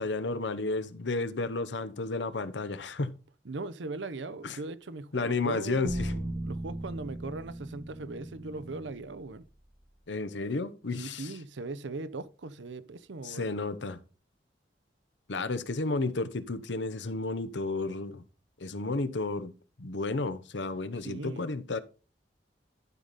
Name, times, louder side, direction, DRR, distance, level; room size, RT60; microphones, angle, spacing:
voice 1, 0.0-3.1 4.4-4.6 5.1-6.2 10.1-11.3 13.2-14.0 15.3-18.2 18.6-19.5 19.8-21.8, left 3 dB, 75° left, 0.9 m, -32 dB
voice 2, 3.4-9.4 11.0-13.5 21.0-21.5, right 3 dB, 85° right, 0.7 m, -39 dB
sound 1, 5.8-10.1, right 1 dB, 10° right, 0.9 m, -38 dB
12.0 x 5.2 x 4.1 m
head